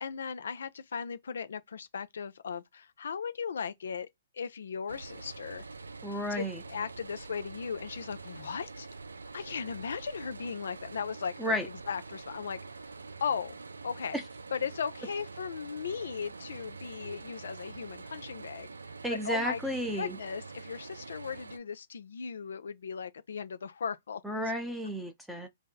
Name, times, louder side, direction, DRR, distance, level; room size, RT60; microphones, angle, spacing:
voice 1, 0.0-4.1 4.3-5.7 6.3-8.9 9.3-11.6 11.9-13.6 13.8-14.2 14.5-19.0 19.2-19.6 19.9-24.2, left 6 dB, 70° left, 0.4 m, -37 dB
sound 1, 4.9-21.6, right 4 dB, 85° right, 0.3 m, -46 dB
voice 2, 6.0-6.6 11.4-11.7 14.1-14.2 19.0-20.2 24.2-25.5, equal, ahead, 0.8 m, -32 dB
2.7 x 2.1 x 3.8 m
hypercardioid pair, 130°, 0 cm